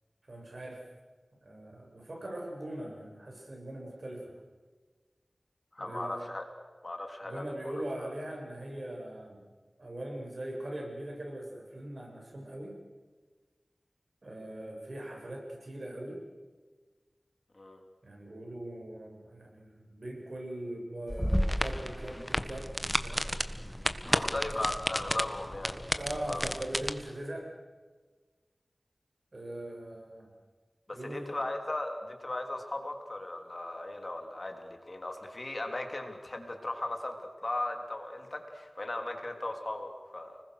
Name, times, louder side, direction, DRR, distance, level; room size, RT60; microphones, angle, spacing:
voice 1, 0.2-0.8 1.4-4.3 5.8-6.2 7.2-9.5 9.8-12.8 14.2-16.2 18.0-22.7 23.0-23.3 24.1-24.7 26.0-27.5 29.3-30.3 30.9-31.4, right 1 dB, 55° right, 0 dB, 7.2 m, -41 dB
voice 2, 5.7-6.4 6.8-8.1 17.5-17.8 22.3-22.4 24.1-26.4 30.9-37.2 37.4-40.4, left 2 dB, 45° left, 4 dB, 3.2 m, -37 dB
sound 1, 21.1-26.9, equal, 5° left, 1.4 m, -32 dB
30.0 x 20.5 x 6.7 m, 1.4 s
wide cardioid pair, 65°, 0 cm